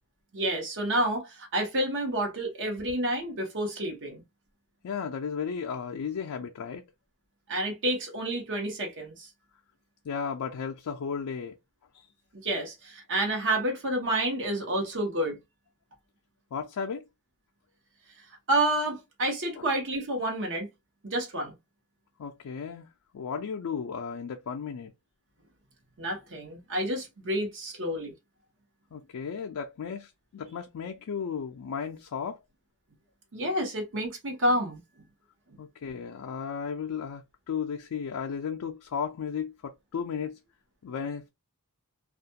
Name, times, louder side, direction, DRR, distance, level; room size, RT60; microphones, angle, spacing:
voice 1, 0.3-4.2 7.5-9.3 12.4-15.4 18.5-20.7 21.0-21.5 26.0-28.1 33.3-34.8, right 1 dB, 60° right, 0.9 m, -29 dB
voice 2, 4.8-6.8 10.0-11.6 11.9-12.1 16.5-17.0 19.6-19.7 22.2-22.9 23.1-24.9 28.9-32.4 35.6-40.4 40.8-41.3, left 6 dB, 75° left, 0.4 m, -34 dB
2.4 x 2.2 x 2.7 m
head